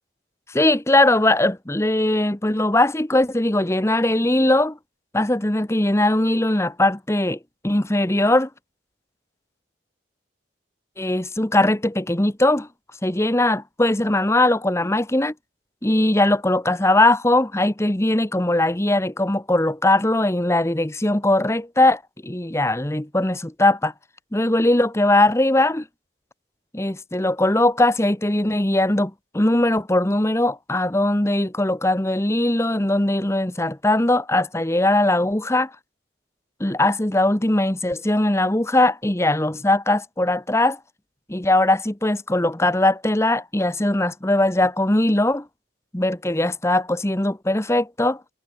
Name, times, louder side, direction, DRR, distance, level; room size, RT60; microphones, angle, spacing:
voice 1, 0.5-4.8 5.1-7.4 7.6-8.5 11.0-12.7 13.0-15.3 15.8-23.9 24.3-25.8 26.7-35.7 36.6-40.8 41.3-45.5 45.9-48.2, left 1 dB, 15° left, 1.1 m, -20 dB
head